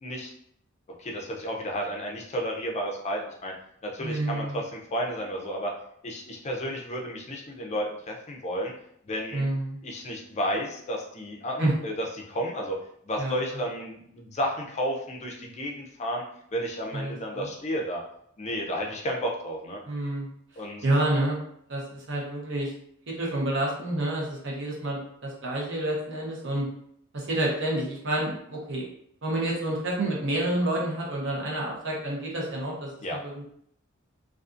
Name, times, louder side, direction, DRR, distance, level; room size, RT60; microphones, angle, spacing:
voice 1, 1.0-3.5 3.8-5.7 6.0-8.7 9.1-9.5 9.8-12.8 13.1-16.2 16.5-18.0 18.4-19.8 20.6-20.8 33.0-33.2, equal, 30° left, 0 dB, 0.4 m, -32 dB
voice 2, 4.0-4.6 9.3-9.8 11.6-11.7 13.2-13.6 16.9-17.5 19.9-20.3 20.8-21.4 21.7-22.7 23.1-26.7 27.1-28.8 29.2-33.4, right 1 dB, 60° right, -2 dB, 0.8 m, -29 dB
2.5 x 2.4 x 2.4 m, 0.68 s
head